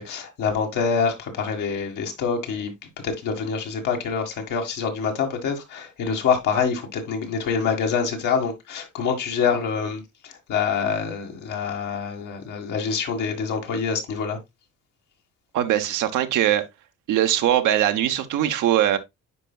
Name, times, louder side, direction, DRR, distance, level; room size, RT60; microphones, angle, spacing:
voice 1, 0.0-2.7 3.0-14.4, left 6 dB, 80° left, 1.9 m, -26 dB
voice 2, 15.5-16.6 17.1-19.0, right 12 dB, 90° right, 0.9 m, -21 dB
9.7 x 4.6 x 2.3 m
cardioid pair, 90°, 30 cm